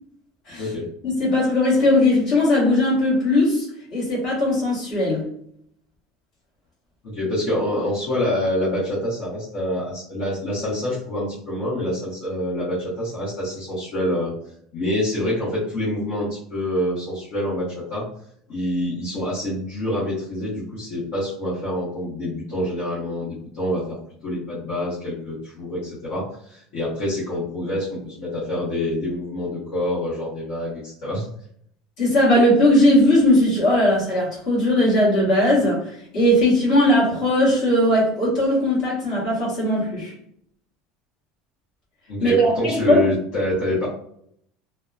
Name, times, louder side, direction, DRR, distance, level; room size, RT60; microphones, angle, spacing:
voice 1, 1.0-5.3 32.0-40.1 42.2-43.0, left 1 dB, 30° left, -7 dB, 1.3 m, -19 dB
voice 2, 7.0-14.3 14.7-18.1 18.5-24.0 24.2-31.3 42.1-43.9, left 1 dB, 50° left, -9 dB, 1.0 m, -26 dB
2.7 x 2.1 x 2.3 m, 0.66 s
cardioid pair, 180°, 0 cm